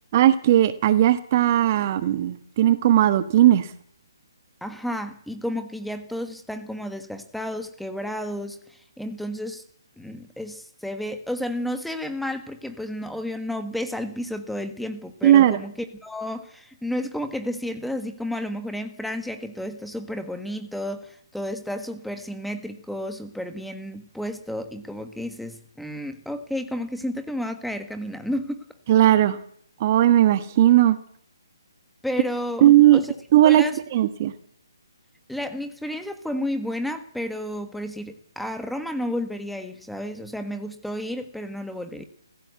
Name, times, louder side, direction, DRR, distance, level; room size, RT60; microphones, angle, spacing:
voice 1, 0.1-3.7 15.2-15.6 28.9-29.4 29.8-31.0 32.6-33.0 33.3-33.6 33.9-34.3, right 13 dB, 35° right, 13 dB, 1.3 m, -17 dB
voice 2, 4.6-9.6 10.0-28.6 32.0-32.7 32.9-33.1 33.4-33.8 35.3-42.0, left 1 dB, ahead, 8 dB, 1.4 m, -32 dB
28.5 x 15.5 x 8.2 m, 0.67 s
hypercardioid pair, 155°, 2 cm